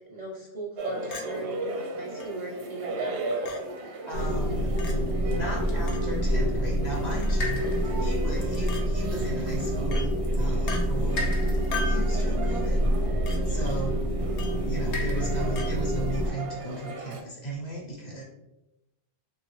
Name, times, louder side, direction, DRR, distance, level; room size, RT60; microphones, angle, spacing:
voice 1, 0.1-3.2, right 1 dB, 50° right, -3 dB, 0.5 m, -38 dB
sound 1, 0.8-17.2, right 2 dB, 85° right, 0.9 m, -37 dB
Chink clink, 1.1-1.3 2.2-2.3 3.4-3.6 4.8-4.9 5.9-6.0 7.2-7.4 8.7-8.8 9.9-10.1 10.7-10.8 11.7-12.1 13.3-13.4 14.4-14.6 15.6-15.7, left 4 dB, 60° left, 0.4 m, -36 dB
voice 2, 3.8-11.4 11.7-12.8 13.4-14.0 14.6-18.2, right 1 dB, 45° left, -4 dB, 0.8 m, -36 dB
sound 2, 4.1-16.3, equal, 85° left, 1.0 m, -27 dB
3.0 x 2.2 x 3.0 m, 0.95 s
omnidirectional pair, 1.1 m